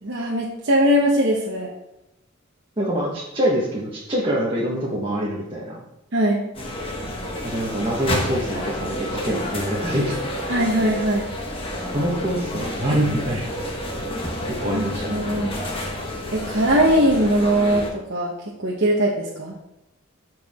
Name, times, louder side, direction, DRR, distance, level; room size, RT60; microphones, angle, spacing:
voice 1, 0.0-1.7 6.1-6.4 10.5-11.3 14.7-15.5 16.3-19.5, equal, 60° right, -3 dB, 1.1 m, -21 dB
voice 2, 2.8-5.8 7.4-10.2 11.9-13.6 14.6-15.2, right 1 dB, 25° right, -5 dB, 1.4 m, -25 dB
sound 1, 6.5-17.9, left 1 dB, 25° left, 1.4 m, -29 dB
13.5 x 4.8 x 3.7 m, 0.89 s
head